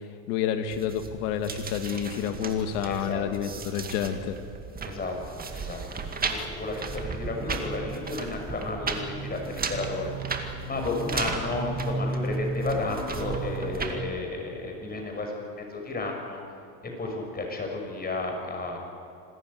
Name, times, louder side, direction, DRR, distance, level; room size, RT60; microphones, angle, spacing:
voice 1, 0.3-4.4, left 8 dB, 80° left, 8 dB, 1.9 m, -29 dB
sound 1, 0.7-14.0, right 4 dB, 20° right, 2.2 m, -34 dB
voice 2, 2.8-3.2 4.8-5.8 6.2-16.5 16.8-18.8, left 2 dB, 20° left, 2 dB, 6.1 m, -33 dB
26.5 x 14.5 x 9.5 m, 2.6 s
supercardioid pair, 125°, 45 cm